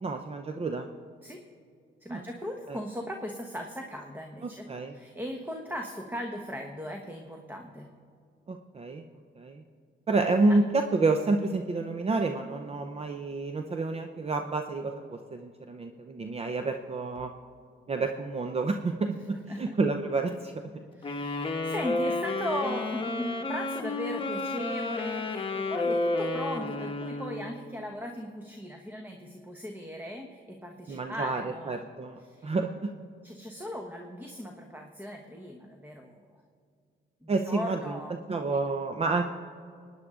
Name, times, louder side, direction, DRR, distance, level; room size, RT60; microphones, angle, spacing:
voice 1, 0.0-0.9 2.1-2.2 2.7-2.8 4.4-5.0 8.5-9.1 9.4-9.6 10.1-17.3 17.9-20.6 30.9-32.9 37.3-38.0 38.3-39.2, right 3 dB, 30° right, 6 dB, 0.7 m, -29 dB
voice 2, 2.0-7.9 19.5-19.7 20.9-31.9 32.3-32.5 33.2-36.2 37.2-38.1 38.5-38.6, equal, 10° right, 3 dB, 1.2 m, -38 dB
sound 1, 21.0-27.6, left 2 dB, 25° left, 1.2 m, -31 dB
24.0 x 9.8 x 3.7 m, 2.3 s
cardioid pair, 90°, 20 cm